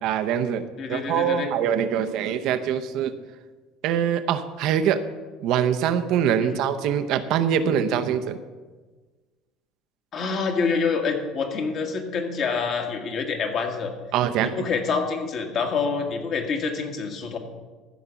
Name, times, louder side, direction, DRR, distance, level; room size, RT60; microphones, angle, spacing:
voice 1, 0.0-0.6 0.9-3.1 3.8-5.0 5.4-8.4 14.1-14.5, right 9 dB, 60° right, 10 dB, 0.7 m, -23 dB
voice 2, 0.8-1.5 6.4-6.6 10.1-13.9 14.4-17.4, left 5 dB, 45° left, 3 dB, 1.7 m, -27 dB
14.0 x 5.1 x 7.0 m, 1.3 s
cardioid pair, 135°, 0 cm